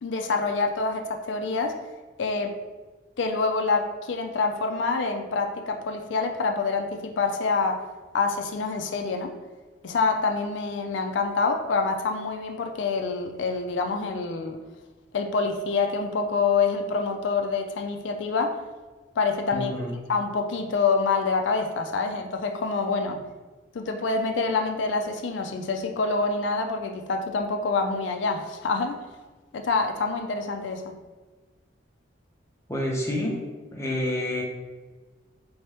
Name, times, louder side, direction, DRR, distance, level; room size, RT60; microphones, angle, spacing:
voice 1, 0.0-1.7 2.2-2.5 3.2-7.8 8.1-9.3 9.8-14.6 15.1-18.6 19.2-19.7 20.1-23.2 23.7-29.0 29.5-30.9, left 4 dB, 70° left, 4 dB, 0.4 m, -26 dB
voice 2, 19.5-19.9 32.7-33.4 33.7-34.4, left 1 dB, 15° left, -2 dB, 0.7 m, -28 dB
3.5 x 2.9 x 3.3 m, 1.3 s
head